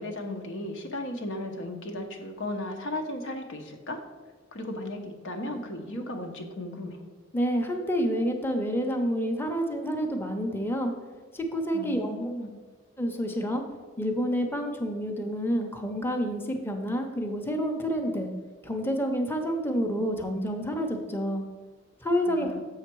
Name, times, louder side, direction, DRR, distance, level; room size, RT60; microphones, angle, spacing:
voice 1, 0.0-4.0 4.5-7.0 11.7-12.5 22.3-22.6, left 1 dB, 90° left, 3 dB, 1.0 m, -35 dB
voice 2, 7.3-10.9 11.3-12.1 13.0-13.6 14.0-18.3 18.6-21.4 22.0-22.5, equal, 10° left, 3 dB, 0.7 m, -28 dB
7.4 x 5.7 x 4.6 m, 1.4 s
head